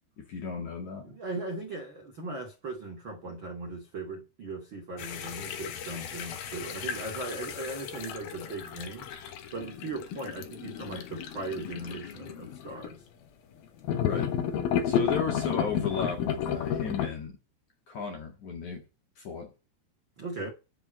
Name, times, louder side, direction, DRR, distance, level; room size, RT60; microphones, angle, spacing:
voice 1, 0.2-1.1 14.0-14.4 14.8-17.4 17.9-18.8 19.2-19.5, left 5 dB, 50° left, 2.6 m, -35 dB
voice 2, 1.0-9.1 9.5-13.0 20.2-20.5, right 2 dB, 60° right, 1.2 m, -38 dB
sound 1, 5.0-12.9 13.8-17.1, left 8 dB, 65° left, 2.6 m, -33 dB
11.0 x 4.7 x 7.5 m
omnidirectional pair, 5.6 m